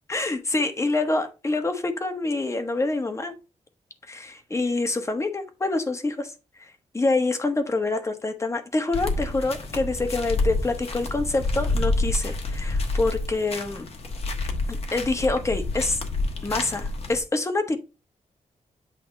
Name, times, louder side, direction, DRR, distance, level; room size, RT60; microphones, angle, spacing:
voice 1, 0.1-3.3 4.1-6.3 6.6-13.9 14.7-16.0 16.4-17.8, left 2 dB, 20° left, 1.0 m, -26 dB
sound 1, 8.9-17.2, left 2 dB, 50° left, 1.3 m, -28 dB
8.3 x 2.8 x 5.3 m
wide cardioid pair, 145°, 13 cm